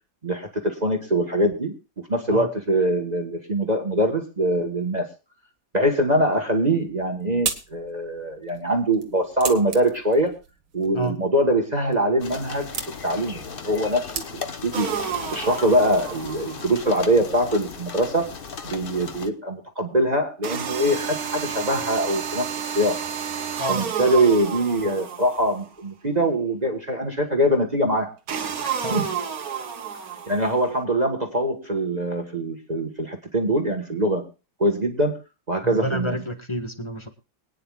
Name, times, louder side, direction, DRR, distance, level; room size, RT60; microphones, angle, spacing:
voice 1, 0.2-1.7 2.1-5.0 5.7-10.3 10.7-12.7 13.0-14.9 15.3-18.3 18.6-22.5 22.7-23.0 23.7-28.1 28.8-29.1 30.3-34.2 34.6-35.2 35.5-36.2, right 1 dB, 25° right, 3 dB, 1.3 m, -23 dB
sound 1, 6.8-14.7, right 6 dB, 75° right, 2.2 m, -37 dB
sound 2, 12.2-19.3, left 5 dB, 45° left, 0.8 m, -37 dB
sound 3, 14.7-16.7 20.4-25.7 28.3-30.7, right 7 dB, 55° right, 1.4 m, -31 dB
voice 2, 35.6-37.1, equal, 15° left, 6 dB, 1.3 m, -29 dB
23.5 x 9.7 x 2.4 m, 0.31 s
omnidirectional pair, 2.1 m